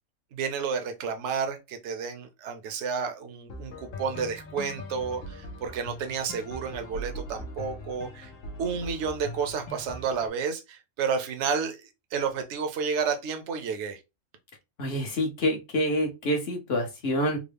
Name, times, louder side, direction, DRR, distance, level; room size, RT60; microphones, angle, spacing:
voice 1, 0.3-8.3 8.6-14.0, right 6 dB, 65° right, 0.9 m, -31 dB
sound 1, 3.5-10.3, equal, 70° left, 1.2 m, -41 dB
voice 2, 14.8-17.4, equal, 50° left, 1.1 m, -27 dB
3.7 x 2.1 x 3.3 m
omnidirectional pair, 1.4 m